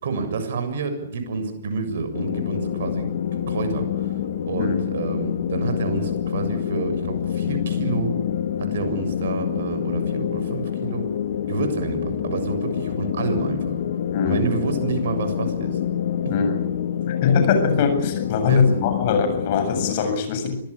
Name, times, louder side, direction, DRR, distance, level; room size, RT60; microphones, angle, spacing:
voice 1, 0.0-4.1 4.5-8.2 8.6-11.1 11.5-13.8 14.3-15.8 18.5-18.9, right 4 dB, 60° right, 8 dB, 6.9 m, -28 dB
sound 1, 2.1-19.9, left 9 dB, 60° left, 2.4 m, -27 dB
voice 2, 14.1-14.5 16.3-16.6 17.1-20.6, left 6 dB, 45° left, 8 dB, 7.7 m, -22 dB
25.5 x 19.5 x 8.6 m, 0.70 s
hypercardioid pair, 125°, 0 cm